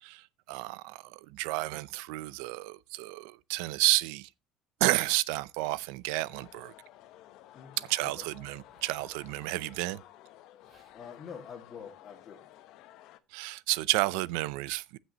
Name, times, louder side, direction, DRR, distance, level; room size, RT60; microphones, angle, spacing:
voice 1, 0.0-4.3 4.8-6.7 7.9-10.0 13.3-15.0, right 19 dB, 85° right, 0.6 m, -31 dB
sound 1, 6.3-13.2, left 14 dB, 60° left, 1.0 m, -54 dB
voice 2, 7.5-8.3 10.9-12.7, left 7 dB, 30° left, 2.0 m, -47 dB
Zipper (clothing), 8.5-9.3 10.3-10.4 10.6-11.0 11.7-11.9, right 2 dB, 20° right, 4.4 m, -64 dB
15.0 x 6.3 x 3.0 m
cardioid pair, 150°, 0 cm